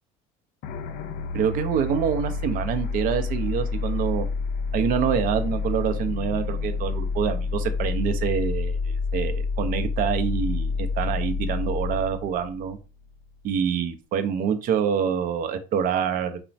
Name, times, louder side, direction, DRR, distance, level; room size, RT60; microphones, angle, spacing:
sound 1, 0.6-13.3, left 4 dB, 60° left, 0.4 m, -28 dB
voice 1, 1.3-4.3 4.7-12.8 13.4-16.4, right 8 dB, 50° right, 9 dB, 0.5 m, -26 dB
3.0 x 2.1 x 2.5 m, 0.32 s
supercardioid pair, 105°, 18 cm